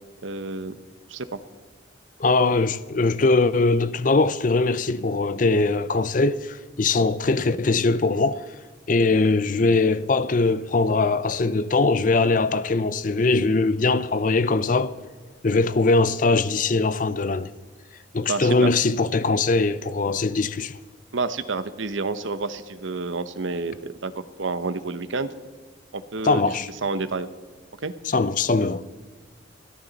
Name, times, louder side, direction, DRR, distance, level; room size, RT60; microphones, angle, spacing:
voice 1, 0.2-0.8 1.1-1.4 18.3-18.7 21.1-25.3 25.9-26.4 26.8-27.3 27.8-27.9, right 3 dB, 75° right, 0.9 m, -29 dB
voice 2, 2.2-8.4 8.9-14.9 15.4-17.5 18.1-20.8 26.2-26.7 28.1-29.0, left 3 dB, 40° left, 0.5 m, -21 dB
29.5 x 10.0 x 4.1 m
head